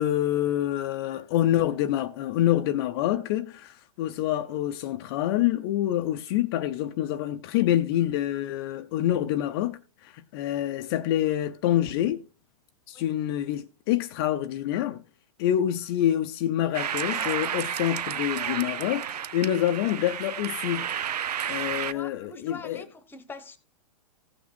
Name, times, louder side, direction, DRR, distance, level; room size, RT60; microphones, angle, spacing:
voice 1, 0.0-12.2 12.9-15.0 15.4-21.0 21.5-22.8, left 12 dB, 40° left, 0.5 m, -27 dB
sound 1, 16.7-21.9, right 9 dB, 90° right, 0.6 m, -31 dB
voice 2, 21.8-23.6, left 4 dB, 10° left, 1.0 m, -43 dB
15.0 x 5.9 x 4.2 m
hypercardioid pair, 145°, 20 cm